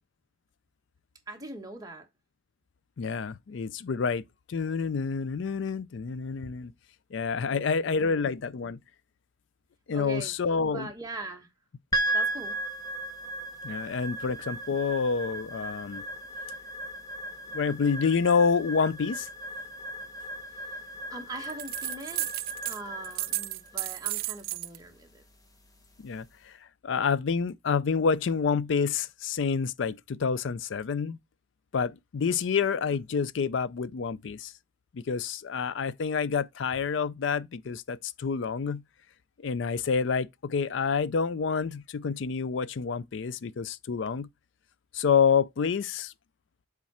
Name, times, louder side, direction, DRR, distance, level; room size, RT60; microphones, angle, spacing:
voice 1, 1.3-2.1 7.5-8.3 9.9-10.3 10.7-11.5 12.1-12.6 20.6-20.8 21.1-22.3 22.6-25.2 32.4-32.6, right 2 dB, 20° right, 1.3 m, -42 dB
voice 2, 3.0-4.2 4.5-6.7 7.1-8.8 9.9-10.9 13.6-16.0 17.5-19.3 26.0-26.6 26.8-31.2 31.7-34.5 34.9-38.8 39.4-44.3 44.9-46.1, left 5 dB, 65° left, 0.4 m, -28 dB
sound 1, 11.9-26.3, right 1 dB, 20° left, 1.0 m, -36 dB
sound 2, 21.4-22.8 23.0-24.8, right 18 dB, 50° right, 0.3 m, -33 dB
7.2 x 3.7 x 4.2 m
head